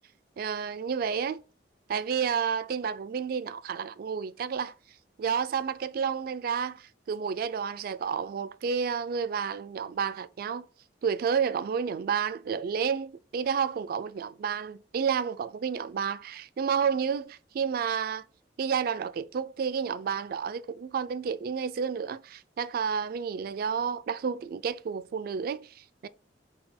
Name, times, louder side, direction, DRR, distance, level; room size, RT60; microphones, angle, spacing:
voice 1, 0.4-1.4 1.9-4.7 5.2-10.7 11.0-18.2 18.6-26.1, right 6 dB, 55° right, 0.3 m, -30 dB
3.8 x 2.2 x 4.3 m
head